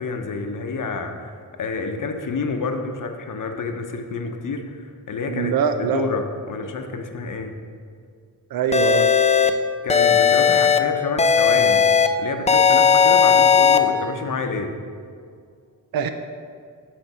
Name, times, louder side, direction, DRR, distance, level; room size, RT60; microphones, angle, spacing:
voice 1, 0.0-7.5 9.8-11.8 12.2-14.8, left 4 dB, 55° left, 5 dB, 0.8 m, -28 dB
voice 2, 5.3-6.0 8.5-9.1 15.9-16.1, right 7 dB, 70° right, 8 dB, 0.5 m, -22 dB
sound 1, 8.7-9.5 9.9-10.8 11.2-12.1 12.5-13.8, left 7 dB, 20° left, 0.4 m, -16 dB
8.0 x 3.3 x 5.9 m, 2.2 s
cardioid pair, 60°, 37 cm